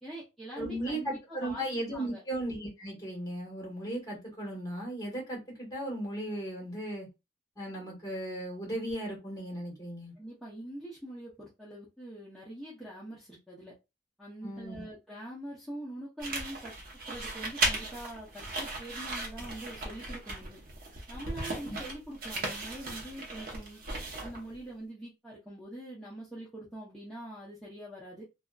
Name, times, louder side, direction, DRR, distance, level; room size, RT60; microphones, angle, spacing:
voice 1, 0.0-1.6 1.9-2.2 10.2-13.7 14.2-16.7 17.1-20.6 21.1-23.8 24.2-28.2, right 1 dB, ahead, 0.6 m, -44 dB
voice 2, 0.6-7.1 7.6-10.1 14.4-14.8 21.6-21.8, right 1 dB, 20° left, 1.4 m, -36 dB
sound 1, 16.2-24.6, right 2 dB, 50° right, 0.8 m, -36 dB
2.7 x 2.4 x 2.2 m
head